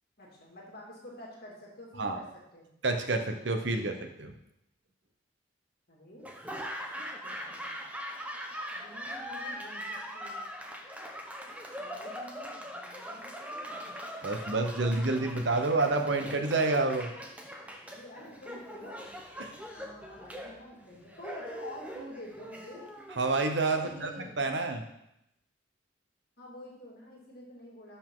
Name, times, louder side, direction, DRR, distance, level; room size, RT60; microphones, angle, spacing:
voice 1, 0.2-2.7 5.9-6.3 7.0-7.8 8.7-10.5 11.8-13.8 17.9-19.0 19.7-22.9 23.7-24.4 26.4-28.0, left 1 dB, 55° left, -3 dB, 2.4 m, -48 dB
voice 2, 2.8-4.3 14.2-17.1 19.4-19.5 23.2-24.1 24.4-24.8, right 3 dB, 70° right, 5 dB, 1.0 m, -28 dB
Laughter / Applause, 6.2-24.3, equal, 10° right, 0.8 m, -42 dB
12.0 x 5.6 x 3.8 m, 0.82 s
head